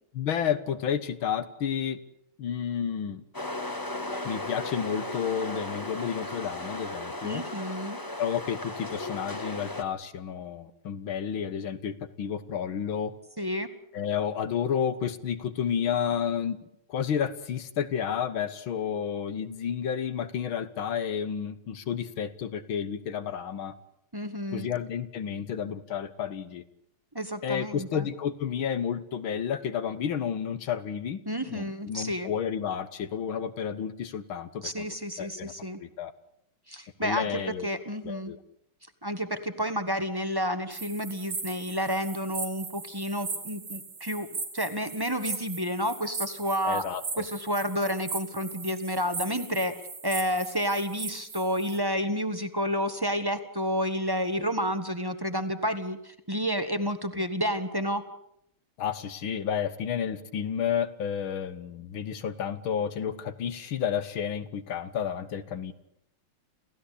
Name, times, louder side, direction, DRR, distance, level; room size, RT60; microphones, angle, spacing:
voice 1, 0.1-2.0 2.4-3.2 4.2-7.5 8.2-13.1 13.9-16.6 16.9-23.8 24.5-26.6 27.4-31.2 31.5-35.5 35.8-36.1 37.0-37.7 38.1-38.4 46.7-47.3 58.8-65.7, left 8 dB, 70° left, 12 dB, 2.1 m, -31 dB
sound 1, 3.3-9.8, left 1 dB, 10° left, 1.2 m, -36 dB
voice 2, 7.2-8.0 13.4-13.7 24.1-24.7 27.1-28.1 31.2-32.3 34.6-35.8 36.7-38.3 39.0-44.3 44.5-46.8 47.2-49.7 50.0-58.0, equal, 15° right, 9 dB, 1.3 m, -30 dB
sound 2, 40.7-51.8, right 4 dB, 75° right, 4.5 m, -38 dB
28.5 x 16.0 x 8.5 m, 0.76 s
omnidirectional pair, 2.3 m